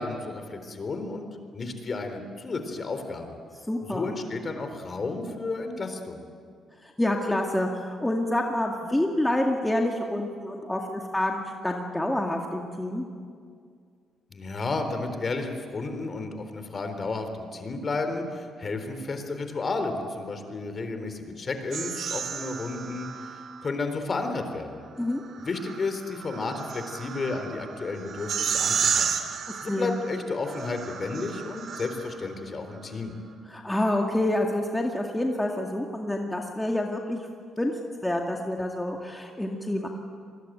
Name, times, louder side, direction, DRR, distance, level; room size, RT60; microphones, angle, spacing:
voice 1, 0.0-3.4 3.8-6.2 14.3-23.1 23.6-24.8 25.5-29.2 29.6-33.1, left 3 dB, 40° left, 7 dB, 3.9 m, -32 dB
voice 2, 3.7-4.1 6.8-13.0 25.0-25.2 29.5-30.0 33.5-37.2 37.6-37.7 38.0-39.9, left 1 dB, 10° left, 1 dB, 2.2 m, -27 dB
sound 1, 21.7-23.7 25.1-32.3, right 7 dB, 60° right, 2.5 m, -32 dB
26.5 x 21.5 x 9.3 m, 2.2 s
cardioid pair, 90°, 0 cm